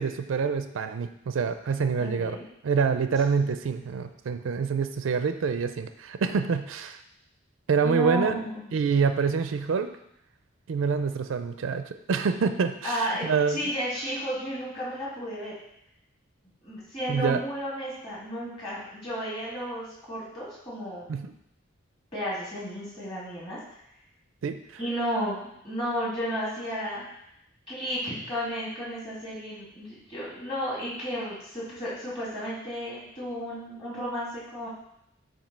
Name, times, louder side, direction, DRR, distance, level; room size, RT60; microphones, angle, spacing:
voice 1, 0.0-2.4 2.6-7.0 7.7-8.3 8.7-9.9 10.7-13.6 17.1-17.4 21.1-21.3 24.4-24.6, right 5 dB, 75° right, 9 dB, 0.4 m, -26 dB
voice 2, 2.0-2.5 7.8-8.7 12.8-15.5 16.6-21.1 22.1-23.6 24.8-27.0 27.7-34.7, equal, 25° left, -8 dB, 2.5 m, -33 dB
7.3 x 2.7 x 5.3 m, 0.77 s
head